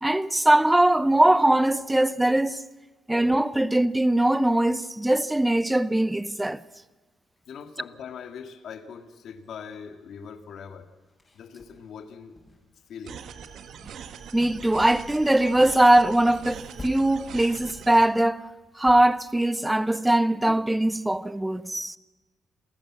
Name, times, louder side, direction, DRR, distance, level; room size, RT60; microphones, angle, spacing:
voice 1, 0.0-2.6 3.1-6.6 14.3-18.5 18.8-22.0, right 1 dB, 10° right, 0.7 m, -21 dB
voice 2, 7.5-10.9 11.3-12.4 12.9-13.2, left 7 dB, 65° left, 1.8 m, -41 dB
sound 1, 11.0-12.8 13.1-13.4 13.8-14.2 14.5-15.1 15.4-15.8 16.2-17.4 17.7-17.9 18.2-19.0, left 2 dB, 30° left, 6.2 m, -48 dB
sound 2, 13.1-18.1, right 7 dB, 70° right, 1.5 m, -42 dB
28.0 x 14.5 x 7.4 m
cardioid pair, 90°, 0 cm